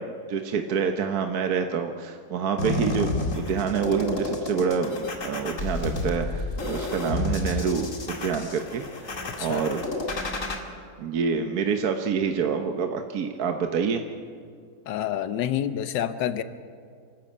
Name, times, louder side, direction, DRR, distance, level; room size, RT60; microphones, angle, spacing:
voice 1, 0.0-8.8 9.4-9.9 11.0-14.0, right 6 dB, 60° right, 5 dB, 1.4 m, -27 dB
sound 1, 2.6-10.6, left 2 dB, 45° left, 2.3 m, -30 dB
voice 2, 9.3-9.6 14.9-16.4, left 10 dB, 90° left, 12 dB, 1.5 m, -28 dB
27.0 x 12.5 x 8.6 m, 2.2 s
omnidirectional pair, 1.9 m